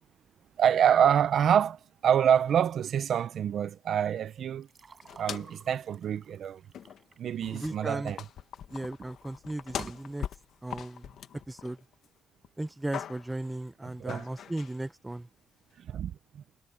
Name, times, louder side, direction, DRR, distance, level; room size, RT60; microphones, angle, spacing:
voice 1, 0.6-4.7 5.2-6.6 7.2-8.2 13.8-14.2 15.9-16.4, right 9 dB, 65° right, 0.7 m, -26 dB
sound 1, 4.6-8.4 8.9-9.3 9.7-10.0, right 5 dB, 30° right, 5.1 m, -51 dB
sound 2, 5.0-5.7 6.0-6.1 6.7-7.1 7.4-12.1 12.4-13.4 14.1-14.8, left 9 dB, 75° left, 1.3 m, -41 dB
voice 2, 7.5-8.1 8.7-10.3 10.6-11.1 11.5-11.8 12.6-15.3, right 1 dB, 10° right, 0.7 m, -36 dB
wide cardioid pair, 160°, 0 cm